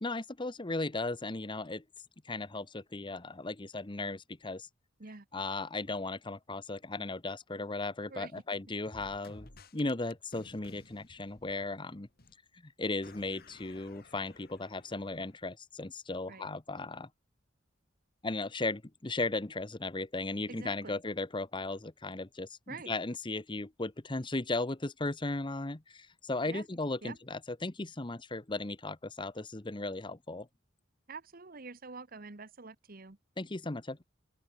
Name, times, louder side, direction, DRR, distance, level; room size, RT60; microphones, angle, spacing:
voice 1, 0.0-1.8 2.2-4.7 5.3-12.1 12.6-17.1 18.2-30.5 33.4-34.0, left 2 dB, 25° left, 1.0 m, -36 dB
sound 1, 8.9-11.9 12.2-12.3 13.0-15.4, left 2 dB, 50° left, 2.9 m, -56 dB
voice 2, 20.5-21.0 22.7-22.9 26.5-26.7 27.0-27.2 31.1-33.2, right 4 dB, 50° right, 1.3 m, -46 dB
open air
head